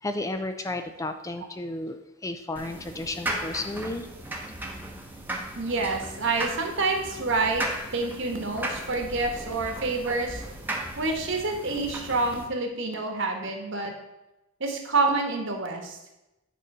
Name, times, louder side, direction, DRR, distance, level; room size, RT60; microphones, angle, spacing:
voice 1, 0.0-4.1, left 2 dB, 15° left, 7 dB, 0.4 m, -33 dB
sound 1, 2.6-12.4, right 1 dB, 10° right, 0.9 m, -36 dB
voice 2, 5.6-7.6 7.9-10.4 11.0-13.9 14.6-16.0, right 3 dB, 65° right, 3 dB, 1.4 m, -27 dB
9.2 x 3.8 x 5.4 m, 0.95 s
head